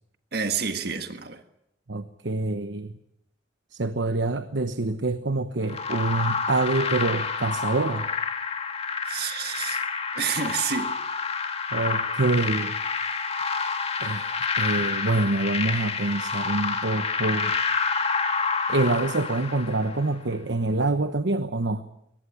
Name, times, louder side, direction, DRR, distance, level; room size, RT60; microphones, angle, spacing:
voice 1, 0.3-1.4 9.0-9.8 10.1-10.9, right 6 dB, 60° right, 1.6 m, -29 dB
voice 2, 1.9-3.0 3.7-8.1 11.7-12.8 14.0-17.5 18.7-21.8, right 2 dB, 75° right, 1.1 m, -26 dB
sound 1, 5.7-20.1, left 5 dB, 35° left, 2.1 m, -28 dB
23.0 x 19.5 x 8.8 m
head